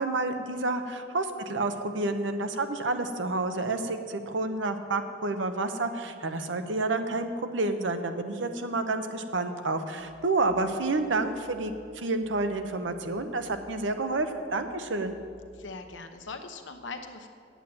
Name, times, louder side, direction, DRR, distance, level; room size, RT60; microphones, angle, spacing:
voice 1, 0.0-15.2, right 2 dB, 85° right, 8 dB, 0.8 m, -29 dB
sound 1, 10.0-15.9, equal, 5° left, 3.3 m, -57 dB
voice 2, 15.5-17.3, left 4 dB, 85° left, 7 dB, 0.9 m, -41 dB
8.7 x 8.2 x 7.6 m, 2.3 s
head